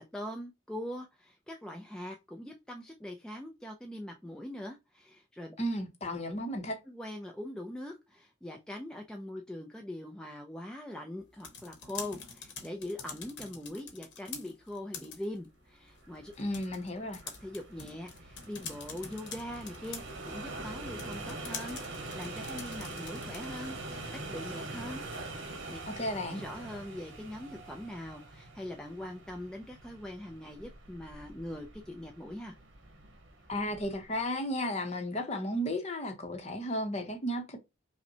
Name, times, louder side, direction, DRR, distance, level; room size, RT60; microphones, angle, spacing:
voice 1, 0.0-5.6 6.9-16.3 17.4-25.1 25.4-25.8 26.3-32.6, left 1 dB, 5° left, 0.3 m, -42 dB
voice 2, 5.6-6.8 16.4-17.2 26.0-26.4 33.5-37.6, equal, 30° left, 0.7 m, -34 dB
sound 1, 11.2-23.7, left 6 dB, 60° left, 0.9 m, -47 dB
sound 2, 15.9-34.2, right 2 dB, 60° right, 1.1 m, -44 dB
5.2 x 2.1 x 2.8 m
head